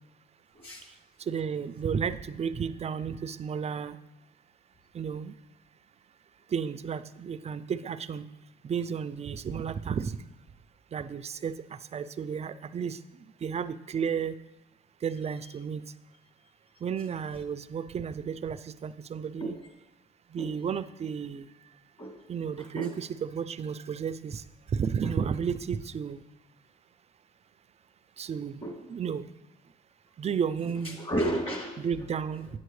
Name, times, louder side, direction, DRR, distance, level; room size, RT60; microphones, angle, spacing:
voice 1, 0.5-0.9 19.4-19.6 20.4-20.5 22.0-22.1 22.6-22.9 25.0-25.1 28.6-28.8 30.8-31.9, right 1 dB, 30° left, 0 dB, 2.5 m, -32 dB
voice 2, 1.3-4.0 4.9-5.3 6.5-8.2 8.6-10.2 10.9-13.0 13.4-14.3 15.0-15.8 16.8-19.5 20.3-21.5 22.3-24.4 24.7-26.2 28.2-28.6 28.9-29.3 30.2-31.0 31.8-32.5, right 7 dB, 35° right, 14 dB, 0.4 m, -32 dB
8.9 x 7.8 x 3.2 m, 0.96 s
cardioid pair, 90°, 20 cm